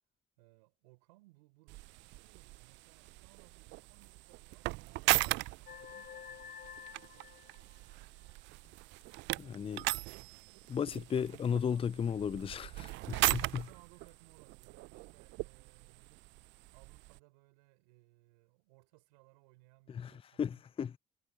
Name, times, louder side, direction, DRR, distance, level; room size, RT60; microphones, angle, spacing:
voice 1, 0.4-7.3 11.4-11.9 13.4-16.3 16.7-20.6, right 25 dB, 80° right, 4.0 m, -64 dB
sound 1, 1.7-17.2, right 21 dB, 65° right, 0.4 m, -38 dB
sound 2, 5.6-8.3, left 8 dB, 50° left, 3.4 m, -50 dB
voice 2, 9.4-9.9 10.7-13.6 19.9-20.1 20.4-21.0, left 7 dB, 30° left, 0.4 m, -35 dB
hypercardioid pair, 45°, 20 cm